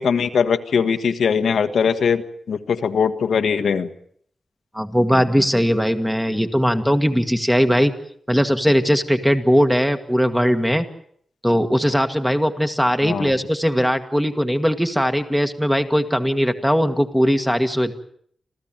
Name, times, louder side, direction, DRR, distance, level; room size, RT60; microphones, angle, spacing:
voice 1, 0.0-2.2 2.5-3.9 13.0-13.3, left 6 dB, 85° left, 8 dB, 1.4 m, -20 dB
voice 2, 4.7-7.9 8.3-10.9 11.4-17.9, equal, ahead, 7 dB, 1.6 m, -19 dB
27.5 x 15.0 x 8.9 m, 0.65 s
wide cardioid pair, 140°, 0 cm